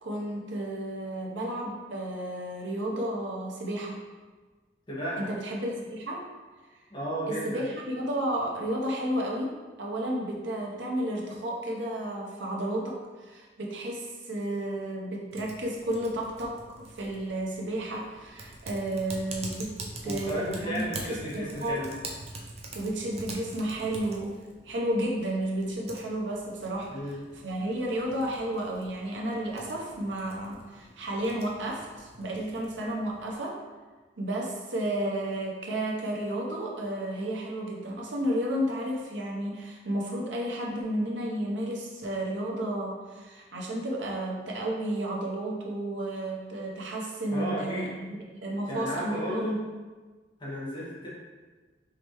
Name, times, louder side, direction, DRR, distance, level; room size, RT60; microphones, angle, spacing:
voice 1, 0.0-4.0 5.2-6.2 7.3-9.5 9.8-13.0 13.2-19.7 20.0-21.8 22.7-24.3 24.6-26.9 27.4-33.6 34.2-48.2 48.4-49.6, right 1 dB, 75° right, -2 dB, 0.9 m, -32 dB
voice 2, 4.9-5.3 6.9-7.6 20.0-21.9 26.9-27.2 47.3-47.9 48.7-49.5 50.4-51.1, equal, 25° left, -8 dB, 1.3 m, -33 dB
Typing, 15.3-33.3, right 2 dB, 35° right, 0.5 m, -45 dB
5.0 x 3.2 x 3.0 m, 1.3 s
head